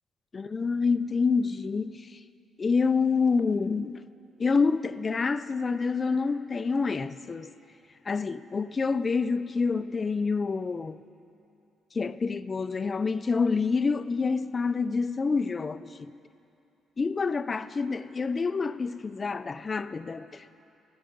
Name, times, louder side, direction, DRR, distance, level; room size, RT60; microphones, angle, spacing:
voice 1, 0.3-2.1 2.6-4.0 4.4-7.5 8.1-11.0 11.9-16.0 17.0-20.6, left 4 dB, 35° left, 0.4 m, -27 dB
16.0 x 15.0 x 3.9 m
cardioid pair, 90°, 0 cm